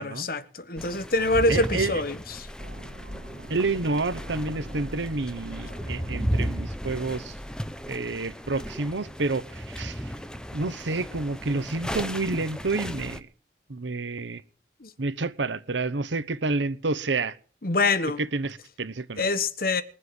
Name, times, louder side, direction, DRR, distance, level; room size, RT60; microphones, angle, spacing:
voice 1, 0.0-2.5 14.8-14.9 17.6-18.2 19.2-19.8, left 2 dB, 50° left, 1.3 m, -25 dB
sound 1, 0.8-13.2, equal, 5° left, 0.8 m, -35 dB
voice 2, 1.5-1.9 3.5-7.3 7.9-10.1 10.5-13.3 13.7-14.4 15.0-17.4 18.2-19.2, right 3 dB, 90° right, 1.0 m, -29 dB
sound 2, 2.6-8.6, equal, 70° right, 3.0 m, -42 dB
21.0 x 7.6 x 7.9 m
head